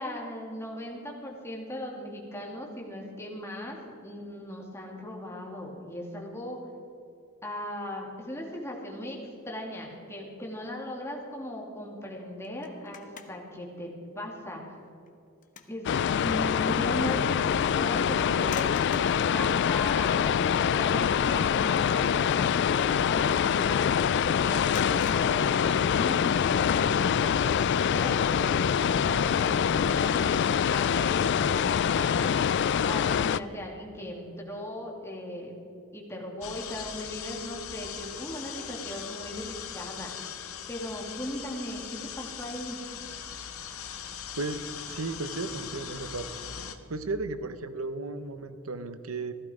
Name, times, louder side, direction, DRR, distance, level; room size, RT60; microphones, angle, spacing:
voice 1, 0.0-6.6 7.4-9.2 9.4-13.9 14.2-14.6 15.7-15.8 16.2-17.4 17.7-23.9 24.4-30.4 30.7-32.3 32.8-35.5 35.9-40.2 40.7-42.8, left 1 dB, 10° left, -1 dB, 2.4 m, -38 dB
sound 1, 12.4-13.6 14.0-14.2 14.8-15.8 16.2-16.3 18.4-19.3 20.2-20.3 20.7-21.0 21.2-21.5 24.7-26.3, left 6 dB, 40° left, 1.0 m, -45 dB
sound 2, 15.9-33.4, left 8 dB, 55° left, 0.3 m, -25 dB
sound 3, 36.4-46.7, left 8 dB, 90° left, 1.0 m, -40 dB
voice 2, 44.4-46.3 46.9-49.3, right 3 dB, 80° right, 11 dB, 0.8 m, -34 dB
15.5 x 14.0 x 5.0 m, 2.7 s
head